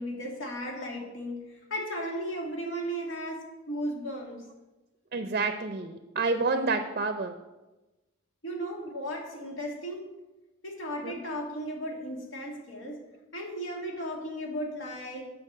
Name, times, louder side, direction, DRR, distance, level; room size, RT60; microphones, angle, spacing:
voice 1, 0.0-4.4 8.4-10.0 10.6-13.0 13.3-15.3, equal, 75° left, 0 dB, 2.2 m, -35 dB
voice 2, 5.1-7.3 11.0-11.1, right 3 dB, 50° right, 8 dB, 0.5 m, -29 dB
8.7 x 6.0 x 6.2 m, 1.1 s
head